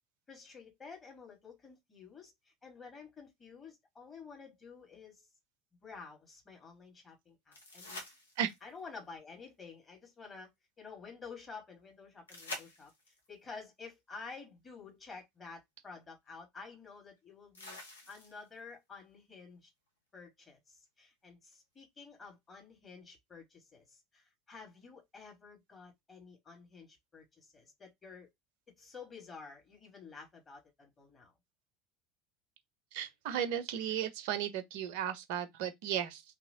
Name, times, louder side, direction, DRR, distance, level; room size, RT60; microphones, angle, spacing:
voice 1, 0.3-2.3 2.6-5.3 5.8-8.0 8.6-10.5 10.8-12.9 13.3-17.8 18.1-19.7 20.1-28.3 28.8-31.3, left 5 dB, 25° left, 1.6 m, -51 dB
sound 1, 7.5-8.8 12.3-13.3 15.2-15.3 17.5-18.6 21.5-21.6, left 2 dB, 80° left, 0.9 m, -47 dB
voice 2, 32.9-36.2, right 9 dB, 55° right, 0.6 m, -35 dB
3.0 x 2.8 x 2.8 m
figure-of-eight pair, 70°, 0 cm